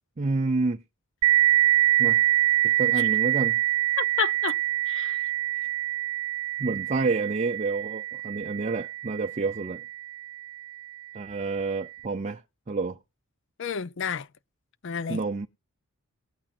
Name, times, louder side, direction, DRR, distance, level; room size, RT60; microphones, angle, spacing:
voice 1, 0.2-0.8 2.0-2.2 2.6-3.6 5.6-5.7 6.6-9.8 11.1-12.4 12.7-13.0 15.1-15.5, right 3 dB, 35° right, 0.5 m, -29 dB
sound 1, 1.2-10.5, right 14 dB, 85° right, 0.5 m, -25 dB
voice 2, 4.0-4.5 4.9-5.3 13.6-14.3 14.8-15.2, left 7 dB, 60° left, 0.6 m, -30 dB
19.5 x 8.7 x 2.5 m
head